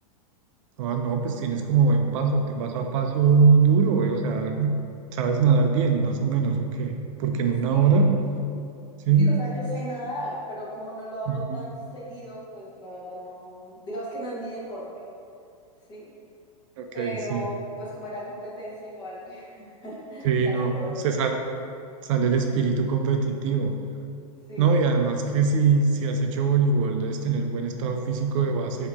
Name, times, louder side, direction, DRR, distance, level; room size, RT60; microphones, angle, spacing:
voice 1, 0.8-4.8 5.1-8.1 9.1-9.3 11.3-11.6 16.8-17.4 20.2-20.7 21.0-21.4 22.0-23.7 24.6-28.9, right 5 dB, 55° right, 4 dB, 0.4 m, -22 dB
voice 2, 7.7-8.1 9.2-14.9 15.9-16.1 16.9-21.1 24.5-24.9, equal, 25° left, -6 dB, 1.1 m, -36 dB
4.7 x 2.8 x 3.4 m, 2.5 s
supercardioid pair, 140°, 19 cm